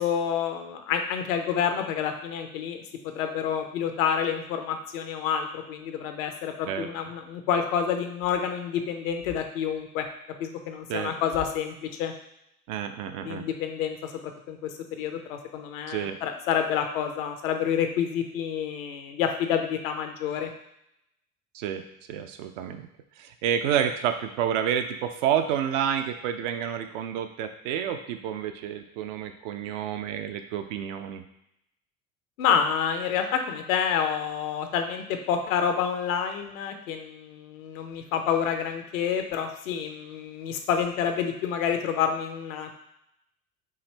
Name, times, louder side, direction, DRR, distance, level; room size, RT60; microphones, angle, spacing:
voice 1, 0.0-2.8 3.1-10.1 10.4-12.1 13.2-14.0 14.2-20.5 32.4-42.7, left 8 dB, 65° left, 5 dB, 0.7 m, -28 dB
voice 2, 12.7-13.4 15.9-16.2 21.5-21.8 22.1-22.9 23.2-31.2, right 9 dB, 55° right, 7 dB, 0.5 m, -29 dB
4.8 x 2.5 x 3.1 m, 0.80 s
figure-of-eight pair, 65°, 44 cm